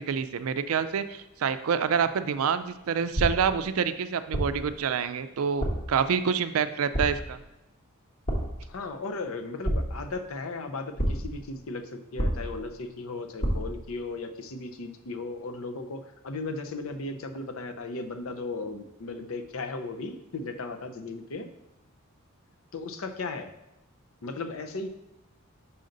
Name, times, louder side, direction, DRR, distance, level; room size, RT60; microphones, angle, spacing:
voice 1, 0.0-7.4, right 6 dB, 75° right, 12 dB, 0.4 m, -27 dB
sound 1, 3.2-3.6 4.3-4.7 5.6-6.0 6.9-7.4 8.3-8.7 9.6-10.2 11.0-11.4 12.2-12.7 13.4-13.8, right 1 dB, 35° left, 1.0 m, -29 dB
voice 2, 8.7-21.5 22.7-23.5 24.2-24.9, left 3 dB, 70° left, 6 dB, 0.6 m, -36 dB
5.6 x 5.2 x 3.9 m, 0.91 s
head